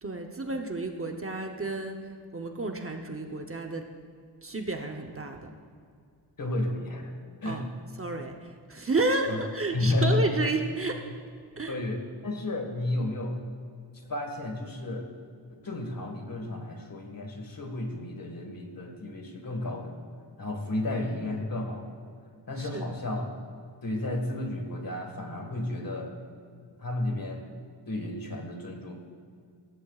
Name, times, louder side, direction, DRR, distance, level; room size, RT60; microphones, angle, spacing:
voice 1, 0.0-3.9 4.4-5.5 7.4-7.6 8.0-11.1 11.6-11.7 22.6-22.9, right 2 dB, 30° right, 3 dB, 0.8 m, -31 dB
voice 2, 6.4-7.1 7.4-7.7 9.3-9.4 9.7-10.5 11.7-13.4 14.1-15.1 15.5-20.0 20.4-22.0 22.5-23.3 23.8-26.2 26.8-27.5 27.9-28.9, left 2 dB, 50° left, 3 dB, 1.8 m, -32 dB
17.5 x 14.5 x 2.4 m, 2.2 s
wide cardioid pair, 140°, 44 cm